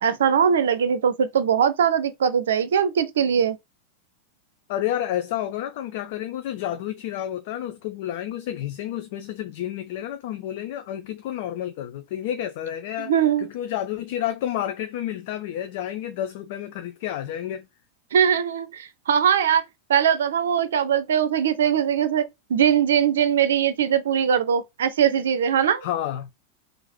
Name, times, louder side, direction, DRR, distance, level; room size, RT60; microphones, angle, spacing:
voice 1, 0.0-3.6 13.0-13.5 18.1-19.6 19.9-22.2 22.5-25.8, right 8 dB, 65° right, 0.6 m, -21 dB
voice 2, 4.7-17.7 25.8-26.3, left 11 dB, 50° left, 0.4 m, -30 dB
3.7 x 2.5 x 4.4 m
figure-of-eight pair, 90°, 0 cm